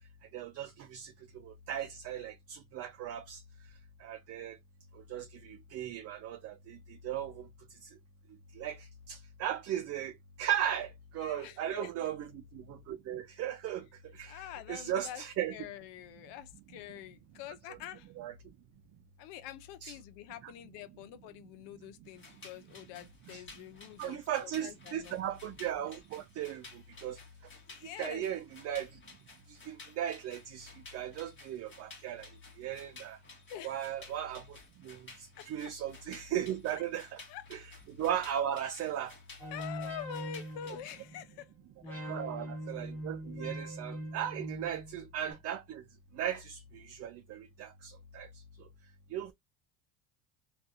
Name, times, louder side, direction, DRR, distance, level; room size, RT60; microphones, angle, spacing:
voice 1, 0.3-1.1 1.4-3.4 4.0-4.6 5.1-6.8 7.0-7.4 8.6-10.1 10.4-13.8 14.1-15.5 18.2-18.3 19.8-19.9 20.4-20.5 23.3-23.4 24.0-26.6 27.0-27.2 28.0-28.9 29.5-32.3 32.6-33.2 33.6-34.4 34.8-35.0 35.5-37.2 37.5-37.6 38.0-39.1 42.1-45.8 46.2-48.3 49.1-49.3, right 10 dB, 35° right, 0.4 m, -37 dB
voice 2, 11.2-12.1 14.3-15.2 15.5-18.1 19.2-25.2 27.8-28.2 33.5-33.9 35.4-35.7 36.7-36.8 37.3-37.5 39.5-41.5 41.8-42.1, left 11 dB, 65° left, 0.7 m, -46 dB
sound 1, 22.1-41.0, left 3 dB, 25° left, 1.1 m, -55 dB
sound 2, 39.4-41.4 41.8-45.3, right 1 dB, 5° left, 1.3 m, -42 dB
2.5 x 2.4 x 2.6 m
supercardioid pair, 95°, 47 cm